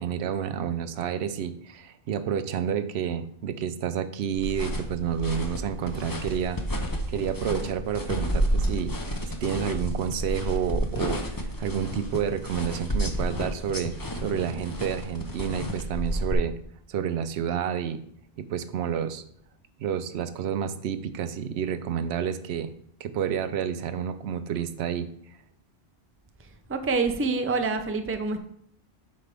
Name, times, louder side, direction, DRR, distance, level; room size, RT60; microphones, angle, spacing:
voice 1, 0.0-6.6 7.1-13.9 14.2-16.6 16.9-18.0 18.4-19.2 19.8-22.7 23.0-25.1, right 8 dB, 85° right, 11 dB, 0.9 m, -30 dB
sound 1, 4.3-16.3, equal, 25° left, 0.7 m, -31 dB
voice 2, 26.7-28.4, right 4 dB, 20° right, 7 dB, 0.4 m, -26 dB
7.7 x 5.3 x 3.4 m, 0.64 s
omnidirectional pair, 1.1 m